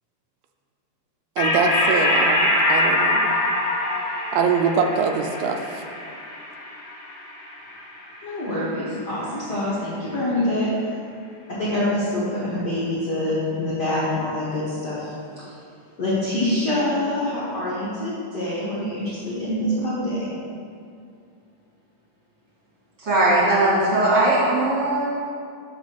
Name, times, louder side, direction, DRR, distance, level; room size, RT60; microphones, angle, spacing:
sound 1, 1.4-8.2, left 1 dB, 55° left, 2.0 m, -23 dB
voice 1, 1.4-3.3 4.3-5.9, right 5 dB, 85° right, 5 dB, 2.6 m, -23 dB
voice 2, 8.2-10.7 11.5-15.5 16.0-20.3, left 1 dB, 75° left, -10 dB, 0.9 m, -25 dB
voice 3, 23.0-25.1, right 1 dB, 25° right, -8 dB, 1.5 m, -19 dB
8.2 x 3.6 x 6.7 m, 2.4 s
omnidirectional pair, 4.4 m